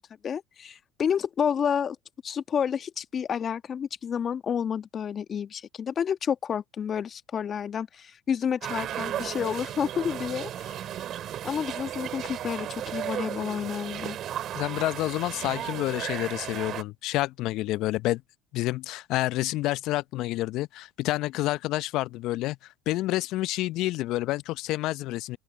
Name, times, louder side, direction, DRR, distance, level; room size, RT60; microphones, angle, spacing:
voice 1, 0.2-2.0 2.2-10.8 11.4-14.2, left 8 dB, 40° left, 1.3 m, -30 dB
sound 1, 8.6-16.8, right 11 dB, 50° right, 3.2 m, -35 dB
voice 2, 14.5-18.2 18.5-22.6 22.9-25.4, left 17 dB, 60° left, 0.7 m, -28 dB
open air
hypercardioid pair, 75°, 0 cm